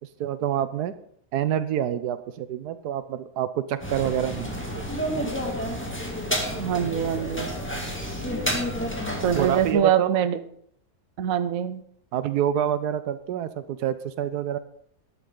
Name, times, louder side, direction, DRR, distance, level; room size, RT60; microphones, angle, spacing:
voice 1, 0.2-0.9 1.3-5.3 9.3-10.2 12.1-14.6, right 10 dB, 90° right, 13 dB, 1.3 m, -27 dB
sound 1, 3.8-9.7, equal, 5° left, 2.1 m, -30 dB
voice 2, 6.6-7.5 9.2-10.4 11.2-11.8, right 9 dB, 65° right, 11 dB, 1.2 m, -24 dB
13.0 x 11.0 x 3.9 m, 0.64 s
omnidirectional pair, 1.7 m